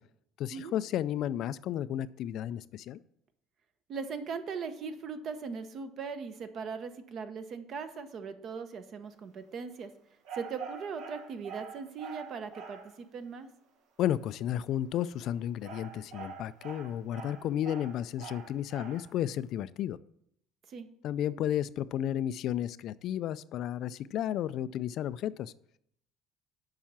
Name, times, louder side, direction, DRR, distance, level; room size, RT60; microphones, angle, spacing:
voice 1, 0.4-3.0 14.0-20.0 21.0-25.5, left 11 dB, 55° left, 16 dB, 0.3 m, -33 dB
voice 2, 3.9-9.9 10.3-13.5 20.7-20.9, right 5 dB, 45° right, 9 dB, 0.9 m, -39 dB
sound 1, 10.2-12.9 15.0-19.1, right 6 dB, 75° right, 1.5 m, -45 dB
7.2 x 5.6 x 7.3 m, 0.72 s
cardioid pair, 130°, 0 cm